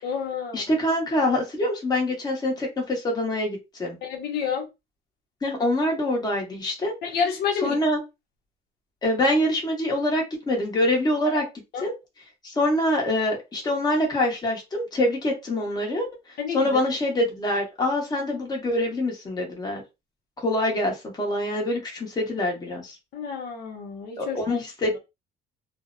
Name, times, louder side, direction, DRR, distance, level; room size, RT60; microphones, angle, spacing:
voice 1, 0.0-0.7 4.0-4.7 7.0-7.8 11.7-11.8 16.4-16.8 23.1-24.6, left 6 dB, 70° left, 0 dB, 0.8 m, -29 dB
voice 2, 0.5-4.0 5.4-6.9 7.6-8.0 9.0-11.5 11.8-11.9 12.4-19.8 20.4-23.0 24.2-25.0, left 1 dB, 25° left, 0 dB, 0.9 m, -25 dB
2.5 x 2.0 x 2.5 m, 0.24 s
cardioid pair, 110°, 17 cm